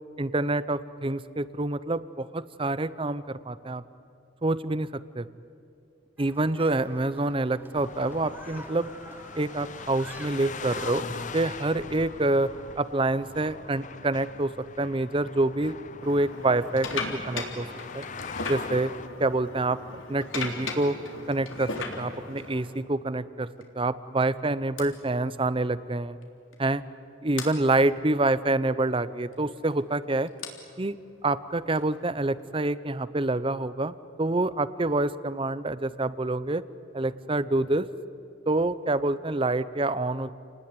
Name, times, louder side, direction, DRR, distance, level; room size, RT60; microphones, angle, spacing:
voice 1, 0.2-3.8 4.4-4.9 5.2-5.3 6.2-8.9 9.3-12.5 12.8-14.5 14.8-15.8 16.0-17.7 17.9-18.0 18.5-18.9 19.2-19.8 20.1-21.0 21.3-21.7 22.0-23.5 23.7-26.2 26.6-26.8 27.2-30.3 30.8-31.0 31.2-36.6 36.9-37.9 38.5-40.3, right 2 dB, 25° right, 15 dB, 0.7 m, -27 dB
Human group actions, 6.2-11.6, right 1 dB, 10° right, 1.9 m, -48 dB
sound 1, 7.7-19.1, left 5 dB, 40° left, 0.7 m, -41 dB
sound 2, 16.0-22.8 23.6-23.8 24.8-24.9 26.2-26.3 26.5-26.7 27.4-27.5 29.3-32.4, left 3 dB, 80° left, 3.5 m, -37 dB
29.5 x 19.5 x 9.8 m, 2.5 s
head